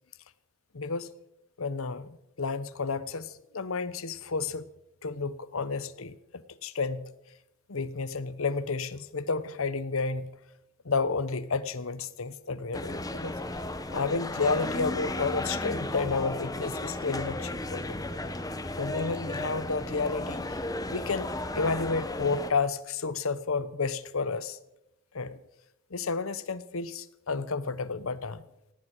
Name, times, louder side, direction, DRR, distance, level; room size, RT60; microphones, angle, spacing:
voice 1, 0.7-1.1 1.6-4.7 5.0-7.1 7.7-10.3 10.8-13.4 13.9-18.0 18.8-20.6 20.9-24.6 25.1-25.4 25.9-28.4, left 4 dB, 80° left, 16 dB, 0.9 m, -31 dB
sound 1, 12.7-22.5, left 2 dB, 15° left, 1.0 m, -34 dB
18.0 x 17.5 x 4.6 m, 0.85 s
head